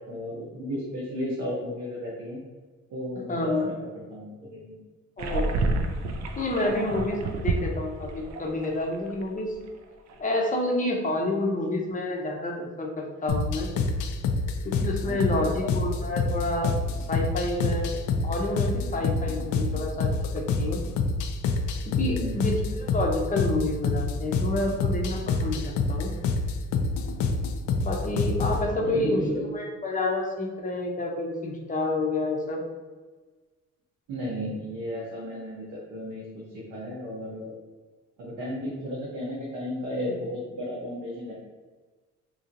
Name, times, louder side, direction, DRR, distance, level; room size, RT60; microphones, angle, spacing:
voice 1, 0.1-2.4 2.9-4.8 15.1-15.5 22.0-22.4 28.8-29.4 34.1-37.5 38.2-41.3, equal, 85° right, -6 dB, 0.9 m, -34 dB
voice 2, 3.3-3.7 5.2-5.7 6.4-9.5 10.2-13.7 14.6-16.7 17.0-17.9 18.2-20.8 21.9-26.1 27.8-29.2 29.5-32.6, left 2 dB, 25° left, 0 dB, 0.7 m, -29 dB
sound 1, 5.2-9.2 9.5-9.7 10.1-10.2, right 3 dB, 60° right, 0.4 m, -29 dB
sound 2, 13.3-28.6, left 4 dB, 75° left, 0.4 m, -27 dB
3.0 x 2.8 x 2.6 m, 1.3 s
cardioid pair, 90°, 30 cm